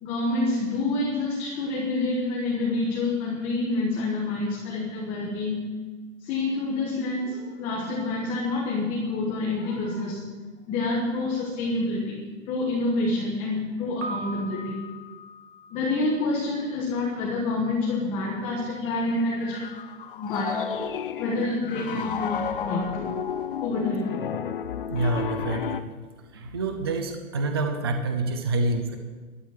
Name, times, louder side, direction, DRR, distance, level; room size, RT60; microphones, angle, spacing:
voice 1, 0.0-5.7 6.2-10.2 10.7-12.2 12.5-14.8 15.7-19.7 20.2-20.6 21.2-23.1 23.6-24.1, left 2 dB, 15° left, -4 dB, 1.4 m, -27 dB
Piano, 14.0-16.9, right 1 dB, 50° right, 2.7 m, -40 dB
Piano 2, 18.8-25.8, left 7 dB, 40° left, 0.6 m, -32 dB
voice 2, 24.9-25.8 26.3-29.0, right 2 dB, 20° right, 6 dB, 0.5 m, -27 dB
12.5 x 12.0 x 7.3 m, 1.4 s
hypercardioid pair, 180°, 41 cm